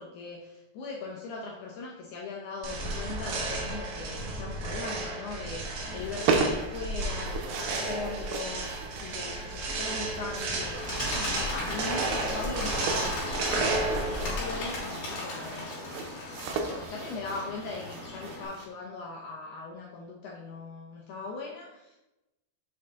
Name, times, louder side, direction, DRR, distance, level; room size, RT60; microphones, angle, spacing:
voice 1, 0.0-10.8 11.2-15.8 16.7-22.0, left 3 dB, 75° left, -2 dB, 1.8 m, -40 dB
sound 1, 2.6-14.5, right 2 dB, 65° right, 2.3 m, -32 dB
sound 2, 5.9-18.7, right 4 dB, 90° right, 2.8 m, -36 dB
Bird, 10.7-18.5, left 2 dB, 60° left, 3.2 m, -37 dB
7.2 x 4.6 x 3.6 m, 0.96 s
omnidirectional pair, 4.4 m